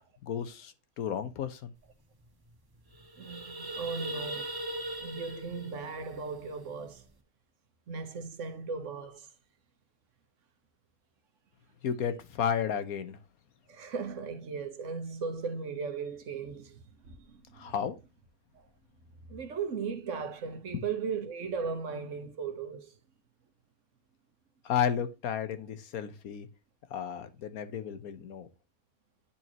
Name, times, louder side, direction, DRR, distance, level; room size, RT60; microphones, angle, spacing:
voice 1, 0.2-1.7 11.8-13.2 17.5-17.9 24.6-26.5 26.9-28.5, left 8 dB, 85° left, 1.4 m, -33 dB
sound 1, 1.9-2.0 2.2-2.4 2.8-7.1, right 1 dB, 20° right, 0.7 m, -40 dB
voice 2, 3.2-4.5 5.0-7.0 7.9-9.3 13.7-17.7 18.5-18.7 19.3-22.9, right 5 dB, 60° right, 1.3 m, -37 dB
9.9 x 4.5 x 2.9 m
omnidirectional pair, 1.5 m